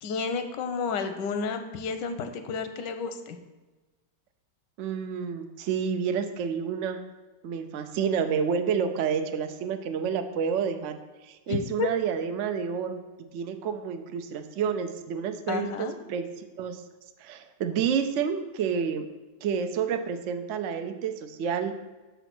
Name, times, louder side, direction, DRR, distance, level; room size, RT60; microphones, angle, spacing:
voice 1, 0.0-3.4 11.5-11.9 15.5-16.0, left 5 dB, 85° left, 7 dB, 1.4 m, -31 dB
voice 2, 4.8-7.0 7.4-11.0 11.2-13.0 13.3-16.8 17.2-19.1 19.4-21.8, right 7 dB, 75° right, 7 dB, 0.7 m, -29 dB
7.1 x 4.0 x 5.9 m, 1.2 s
omnidirectional pair, 1.9 m